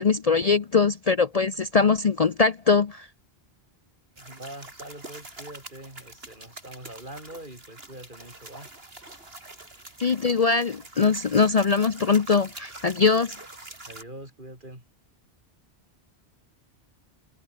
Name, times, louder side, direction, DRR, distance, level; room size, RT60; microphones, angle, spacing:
voice 1, 0.0-3.1 10.0-13.4, left 5 dB, 40° left, 0.7 m, -22 dB
voice 2, 4.2-8.7 13.9-14.8, right 1 dB, 50° right, 7.9 m, -43 dB
sound 1, 4.2-14.0, right 2 dB, 65° right, 4.8 m, -45 dB
omnidirectional pair, 1.1 m